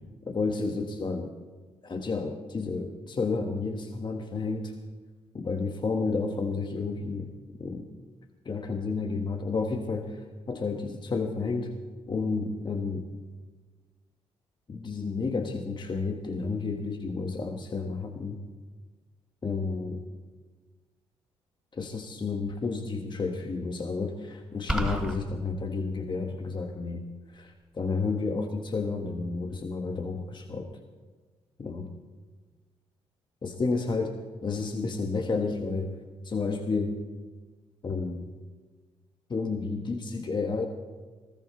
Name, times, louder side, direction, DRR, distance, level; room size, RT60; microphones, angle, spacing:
voice 1, 0.0-1.4 1.8-4.7 5.3-7.9 8.4-11.7 12.1-13.1 14.7-18.4 19.4-20.0 21.7-27.0 27.3-30.7 31.6-31.9 33.4-35.9 36.2-37.0 37.8-38.2 39.3-40.7, left 4 dB, 40° left, 5 dB, 1.3 m, -31 dB
sound 1, 24.7-25.2, right 1 dB, ahead, 3.2 m, -28 dB
20.0 x 14.0 x 4.0 m, 1.3 s
supercardioid pair, 60°, 12 cm